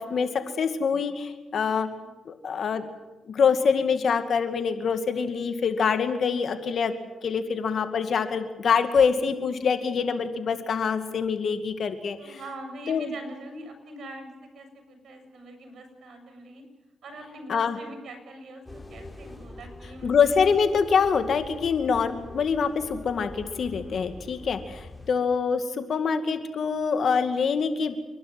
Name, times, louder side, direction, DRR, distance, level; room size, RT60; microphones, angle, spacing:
voice 1, 0.0-0.4 1.6-2.1 12.2-16.6 17.0-20.1 25.0-25.1, right 1 dB, 75° right, 6 dB, 7.4 m, -43 dB
voice 2, 0.6-1.9 2.3-2.8 3.3-6.9 7.2-12.4 12.9-13.1 17.5-17.8 20.0-28.0, left 6 dB, 65° left, 8 dB, 2.3 m, -25 dB
sound 1, 18.7-25.1, left 2 dB, 20° left, 4.3 m, -44 dB
29.5 x 12.0 x 9.5 m, 1.1 s
cardioid pair, 70°, 0 cm